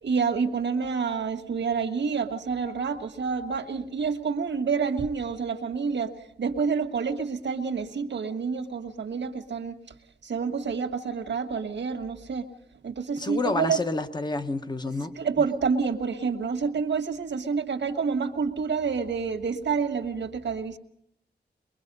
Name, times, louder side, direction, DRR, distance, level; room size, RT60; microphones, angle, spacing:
voice 1, 0.0-9.8 10.2-12.5 12.8-13.8 14.9-20.8, right 5 dB, 90° right, 5 dB, 1.5 m, -28 dB
voice 2, 13.2-15.1, left 3 dB, 25° left, 9 dB, 0.9 m, -29 dB
23.0 x 22.0 x 5.4 m, 0.77 s
wide cardioid pair, 135°, 18 cm